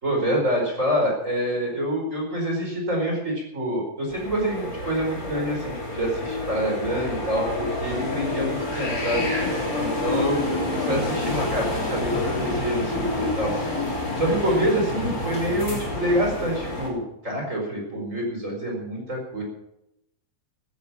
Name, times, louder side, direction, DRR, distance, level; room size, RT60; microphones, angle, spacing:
voice 1, 0.0-9.3 9.8-13.5 14.2-19.4, equal, 20° right, 0 dB, 4.9 m, -26 dB
sound 1, 4.1-16.9, left 2 dB, 25° left, 3.8 m, -28 dB
14.5 x 11.5 x 7.3 m, 0.83 s
omnidirectional pair, 3.7 m